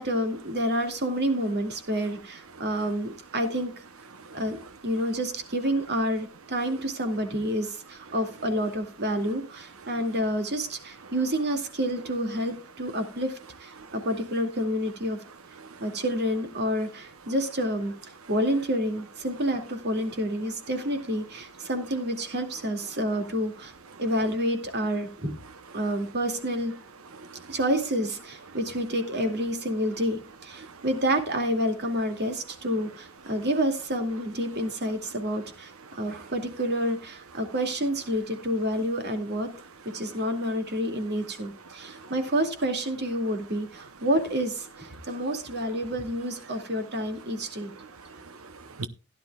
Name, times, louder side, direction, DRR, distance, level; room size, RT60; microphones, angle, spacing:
voice 1, 0.0-3.7 4.3-13.3 13.6-15.2 15.8-17.9 18.3-23.7 24.0-25.4 25.7-26.7 27.5-35.7 36.0-39.5 39.9-47.7, equal, 50° right, 2.3 m, -28 dB
voice 2, 27.1-27.6 30.6-30.8 41.8-42.1 47.8-48.9, right 4 dB, 70° right, 0.8 m, -43 dB
16.5 x 11.0 x 2.4 m
head